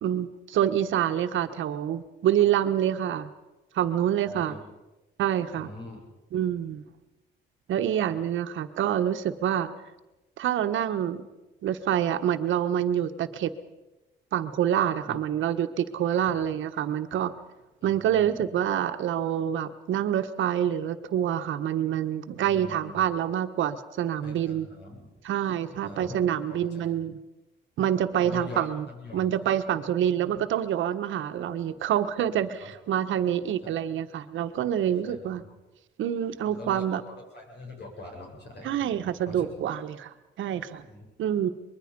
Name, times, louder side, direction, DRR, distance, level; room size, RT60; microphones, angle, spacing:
voice 1, 0.0-3.3 3.7-4.5 5.2-5.7 6.3-6.8 7.7-9.7 10.4-11.3 11.6-13.5 14.3-17.3 17.8-24.7 25.2-27.2 27.8-28.9 29.1-35.4 36.0-37.0 38.6-40.8 41.2-41.5, right 10 dB, 75° right, 10 dB, 1.3 m, -27 dB
voice 2, 4.2-4.6 5.6-6.0 8.1-8.2 15.0-15.2 16.1-16.2 17.8-18.4 22.4-23.0 24.2-25.1 25.8-26.2 26.5-26.9 28.2-29.3 31.9-32.0 32.6-32.7 34.8-35.4 36.4-39.5 40.8-41.3, left 2 dB, 55° left, 1 dB, 7.8 m, -44 dB
24.5 x 21.5 x 5.4 m, 1.0 s
cardioid pair, 90°, 20 cm